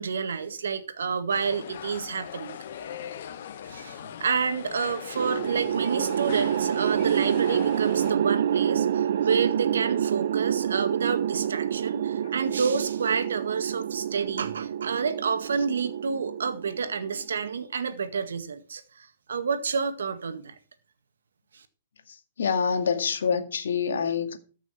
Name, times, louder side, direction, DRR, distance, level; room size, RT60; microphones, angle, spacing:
voice 1, 0.0-2.6 3.7-20.5 21.5-21.6, right 5 dB, 90° right, 1.8 m, -29 dB
sound 1, 1.3-8.1, left 9 dB, 60° left, 1.1 m, -40 dB
sound 2, 5.2-17.5, right 9 dB, 65° right, 0.6 m, -28 dB
voice 2, 22.4-24.4, left 6 dB, 80° left, 2.0 m, -26 dB
14.0 x 6.3 x 5.8 m
hypercardioid pair, 145°, 0 cm